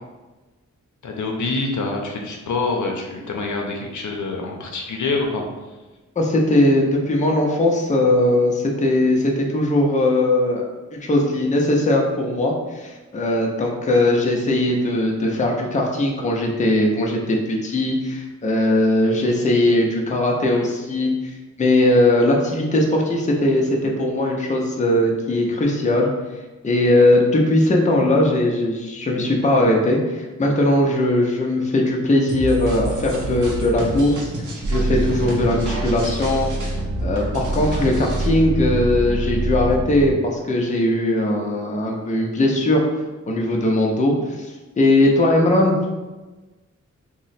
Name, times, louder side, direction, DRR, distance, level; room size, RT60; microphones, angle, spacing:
voice 1, 1.0-5.4, left 3 dB, 75° left, 1 dB, 0.6 m, -26 dB
voice 2, 6.2-10.6 10.9-21.3 21.6-26.1 26.6-34.3 34.7-36.5 37.0-42.8 43.3-45.8, left 1 dB, 25° left, -1 dB, 0.5 m, -19 dB
sound 1, 32.3-38.3, right 2 dB, 80° right, 0.7 m, -30 dB
sound 2, 34.6-40.1, right 2 dB, 45° right, 0.4 m, -25 dB
2.9 x 2.1 x 4.0 m, 1.2 s
wide cardioid pair, 115°, 30 cm